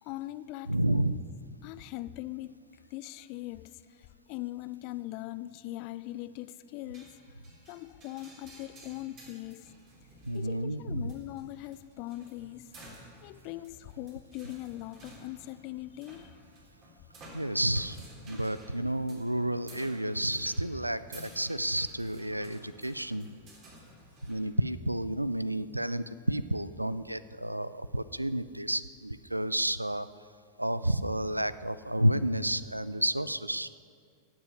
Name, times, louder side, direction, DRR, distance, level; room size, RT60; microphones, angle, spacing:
voice 1, 0.0-1.2 1.6-7.2 7.7-9.7 10.3-12.7 13.2-16.3, left 16 dB, 45° left, 16 dB, 0.4 m, -41 dB
voice 2, 0.7-1.2 10.3-11.1 17.3-23.3 24.2-30.1 30.6-33.7, right 1 dB, 85° right, 16 dB, 0.4 m, -31 dB
sound 1, 6.9-24.4, right 1 dB, 35° right, 3.3 m, -53 dB
18.0 x 7.3 x 6.3 m, 2.2 s
figure-of-eight pair, 90°, 0 cm